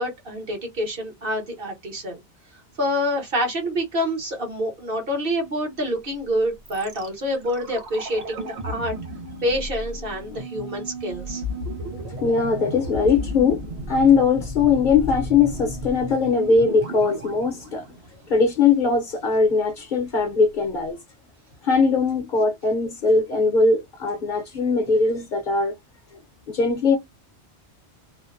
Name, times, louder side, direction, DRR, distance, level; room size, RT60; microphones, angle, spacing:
voice 1, 0.0-2.2 2.8-8.9 9.4-11.4, equal, 55° right, 1.3 m, -27 dB
sound 1, 6.7-18.7 18.9-19.0, equal, 75° right, 1.2 m, -34 dB
voice 2, 12.2-17.9 18.3-21.0 21.6-25.7 26.5-27.0, left 4 dB, 50° left, 0.8 m, -20 dB
2.7 x 2.1 x 2.4 m
omnidirectional pair, 1.1 m